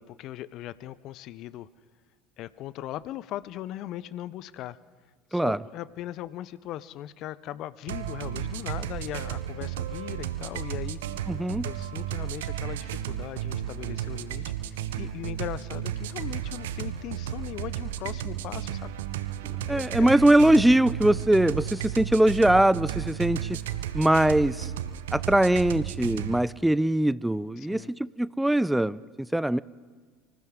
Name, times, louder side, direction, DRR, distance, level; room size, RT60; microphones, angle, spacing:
voice 1, 0.0-1.7 2.4-4.8 5.3-11.0 11.6-18.9 19.6-20.2 27.6-27.9, left 13 dB, 55° left, 18 dB, 0.5 m, -39 dB
sound 1, 7.9-26.4, right 11 dB, 75° right, 0.7 m, -33 dB
voice 2, 11.3-11.7 19.7-23.6 23.9-24.7 25.1-29.6, right 1 dB, 5° right, 20 dB, 0.4 m, -22 dB
25.0 x 15.5 x 3.7 m, 1.4 s
hypercardioid pair, 70°, 0 cm